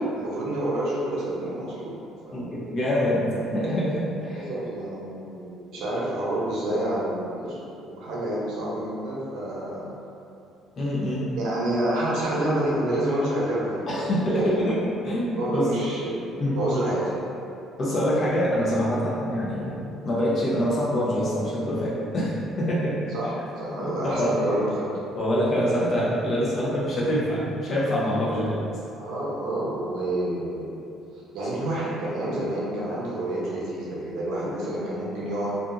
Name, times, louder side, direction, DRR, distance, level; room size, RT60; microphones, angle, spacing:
voice 1, 0.1-2.0 2.2-2.4 4.3-9.9 11.4-14.7 15.4-16.1 16.5-17.1 23.1-24.9 28.9-30.9 31.3-35.5, right 1 dB, 75° right, -6 dB, 0.7 m, -28 dB
voice 2, 2.3-4.4 10.8-11.3 13.9-15.7 16.4-16.7 17.8-23.0 23.8-24.3 25.2-28.6, equal, 45° left, -7 dB, 0.8 m, -25 dB
2.6 x 2.4 x 2.5 m, 2.7 s
cardioid pair, 95°, 0 cm